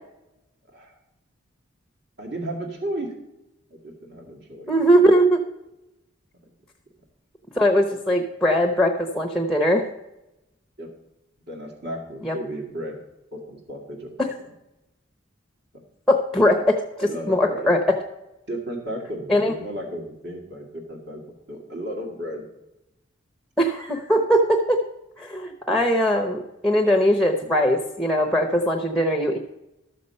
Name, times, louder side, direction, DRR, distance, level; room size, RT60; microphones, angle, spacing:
voice 1, 2.2-3.2 3.7-4.8 6.4-6.5 10.8-10.9 11.5-13.0 13.3-14.5 16.4-16.6 17.0-17.7 18.5-21.2 21.5-22.5, right 1 dB, 50° right, 1 dB, 2.0 m, -34 dB
voice 2, 4.7-5.4 7.6-9.9 12.2-12.3 16.1-16.8 17.3-18.0 19.3-19.5 23.6-24.8 25.2-29.4, equal, ahead, 3 dB, 0.8 m, -20 dB
13.0 x 6.8 x 5.4 m, 0.93 s
head